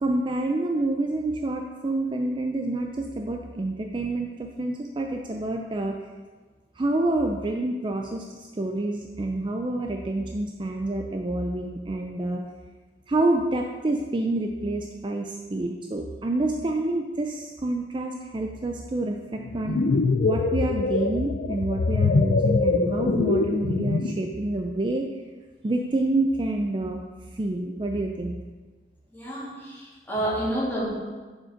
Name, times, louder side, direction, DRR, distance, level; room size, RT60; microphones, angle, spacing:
voice 1, 0.0-6.0 6.8-12.4 13.1-19.8 20.2-25.1 25.6-27.0 27.3-28.4, right 2 dB, 30° right, 2 dB, 0.4 m, -28 dB
sound 1, 19.5-24.3, left 3 dB, 60° left, 0.4 m, -23 dB
voice 2, 29.1-30.9, right 1 dB, 10° left, -7 dB, 2.4 m, -29 dB
7.4 x 5.1 x 5.0 m, 1.3 s
head